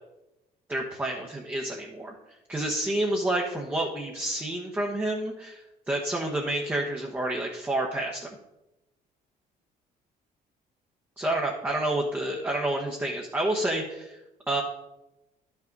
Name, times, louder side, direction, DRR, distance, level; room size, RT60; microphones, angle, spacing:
voice 1, 0.7-2.2 2.5-8.3 11.2-14.2 14.5-14.6, right 1 dB, 10° right, -1 dB, 1.1 m, -29 dB
10.5 x 5.9 x 4.0 m, 0.95 s
cardioid pair, 110°, 17 cm